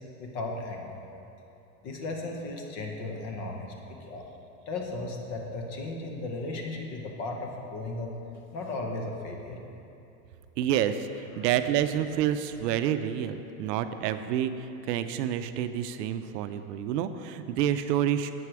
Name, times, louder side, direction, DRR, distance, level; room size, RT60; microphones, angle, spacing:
voice 1, 0.2-1.0 1.8-4.2 4.7-8.1 8.5-9.6 11.4-11.5, left 2 dB, 35° left, 1 dB, 0.8 m, -35 dB
voice 2, 10.6-18.3, right 10 dB, 80° right, 10 dB, 0.6 m, -28 dB
7.8 x 4.8 x 5.9 m, 2.9 s
supercardioid pair, 155°, 48 cm